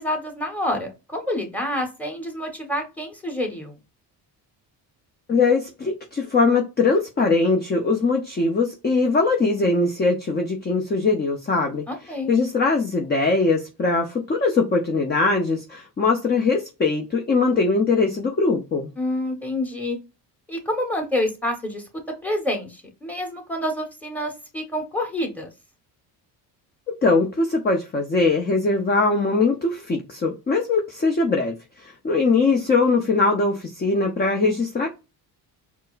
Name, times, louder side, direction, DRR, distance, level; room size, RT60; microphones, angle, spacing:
voice 1, 0.0-3.8 11.9-12.3 19.0-20.0 20.5-21.9 22.2-25.5, left 1 dB, 5° left, 3 dB, 1.2 m, -28 dB
voice 2, 5.3-11.8 12.3-18.9 26.9-34.9, left 3 dB, 25° left, 2 dB, 0.6 m, -21 dB
4.5 x 2.0 x 2.5 m, 0.28 s
cardioid pair, 85°, 42 cm